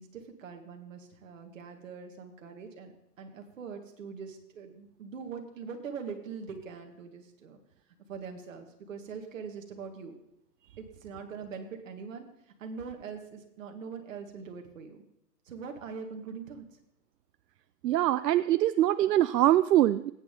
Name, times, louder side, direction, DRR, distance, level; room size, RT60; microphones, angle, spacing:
voice 1, 0.0-7.6 8.1-10.2 10.8-15.0 15.5-16.8, right 5 dB, 50° right, 4 dB, 2.0 m, -42 dB
voice 2, 17.8-20.1, right 13 dB, 80° right, 14 dB, 0.6 m, -23 dB
18.0 x 8.8 x 3.8 m, 0.82 s
hypercardioid pair, 165°, 48 cm